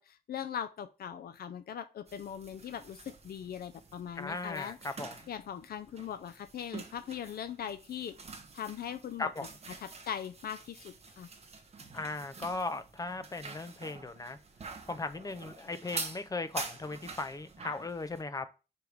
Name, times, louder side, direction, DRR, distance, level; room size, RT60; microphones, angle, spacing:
voice 1, 0.0-4.8 5.3-8.2 8.5-9.3 9.8-11.3, left 9 dB, 70° left, 0.5 m, -40 dB
sound 1, 2.1-18.2, right 4 dB, 40° right, 1.1 m, -46 dB
voice 2, 4.2-5.2 9.2-9.5 11.9-14.4 14.9-18.5, left 3 dB, 20° left, 0.6 m, -37 dB
4.9 x 4.7 x 5.2 m
wide cardioid pair, 165°, 16 cm